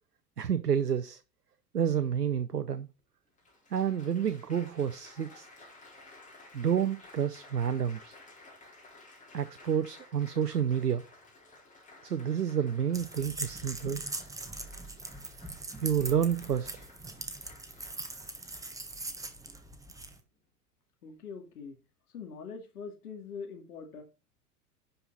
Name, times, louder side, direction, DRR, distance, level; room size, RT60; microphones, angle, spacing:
voice 1, 0.4-1.2 1.7-2.9 3.7-5.5 6.5-8.1 9.3-11.0 12.0-14.0 15.8-16.9, right 8 dB, 90° right, 0.7 m, -29 dB
Applause, 2.6-2.7 3.4-19.3 20.0-20.4, left 2 dB, 15° left, 4.1 m, -55 dB
sound 1, 12.9-20.2, right 2 dB, 5° right, 1.4 m, -41 dB
voice 2, 21.0-21.8 22.1-24.0, left 5 dB, 70° left, 2.5 m, -43 dB
11.0 x 5.6 x 4.0 m
figure-of-eight pair, 90°, 46 cm